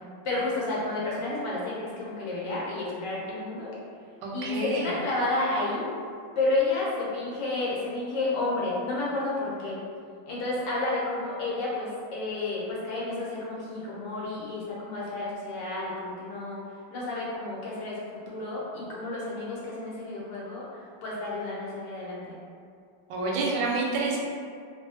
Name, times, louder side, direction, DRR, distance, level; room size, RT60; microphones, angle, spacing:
voice 1, 0.2-3.7 4.3-5.9 6.4-9.8 10.3-16.6 16.9-22.4, left 2 dB, 75° left, -6 dB, 1.3 m, -31 dB
voice 2, 4.2-5.0 23.1-24.2, right 3 dB, 90° right, -2 dB, 1.3 m, -28 dB
3.0 x 2.4 x 2.6 m, 2.2 s
omnidirectional pair, 2.0 m